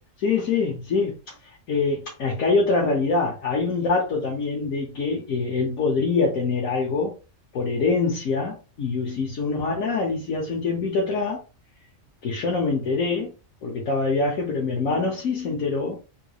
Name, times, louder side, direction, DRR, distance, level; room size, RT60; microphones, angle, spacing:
voice 1, 0.2-1.3 1.7-7.1 7.5-11.4 12.2-13.3 13.6-16.0, left 4 dB, 85° left, 1.4 m, -24 dB
3.8 x 3.0 x 2.3 m
omnidirectional pair, 1.4 m